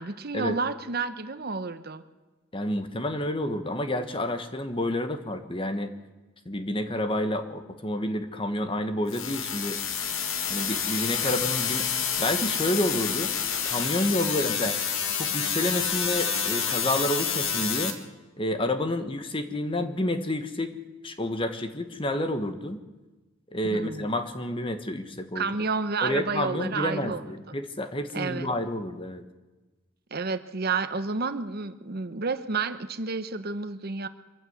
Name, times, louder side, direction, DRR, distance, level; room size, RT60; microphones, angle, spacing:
voice 1, 0.0-2.0 11.2-11.3 23.7-24.2 25.3-27.2 28.1-28.5 30.1-34.1, right 4 dB, 50° right, 11 dB, 0.9 m, -30 dB
voice 2, 2.5-5.9 6.4-9.8 10.5-11.9 12.2-13.3 13.6-14.8 15.2-18.0 18.4-20.7 21.0-22.8 23.5-25.5 26.0-29.2, left 1 dB, 25° left, 8 dB, 1.4 m, -29 dB
sound 1, 9.1-17.9, left 7 dB, 80° left, 2.1 m, -28 dB
24.0 x 15.0 x 8.1 m, 1.2 s
head